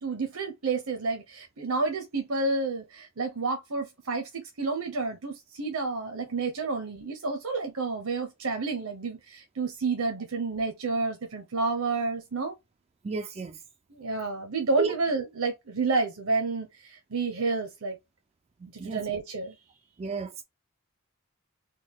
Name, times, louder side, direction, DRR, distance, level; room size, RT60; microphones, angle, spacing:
voice 1, 0.0-12.5 13.9-18.0 18.7-19.6, right 3 dB, 80° right, 0.8 m, -30 dB
voice 2, 13.0-13.6 14.8-14.9 18.8-19.0 20.0-20.4, right 4 dB, 30° right, 0.3 m, -31 dB
4.1 x 2.3 x 3.5 m
head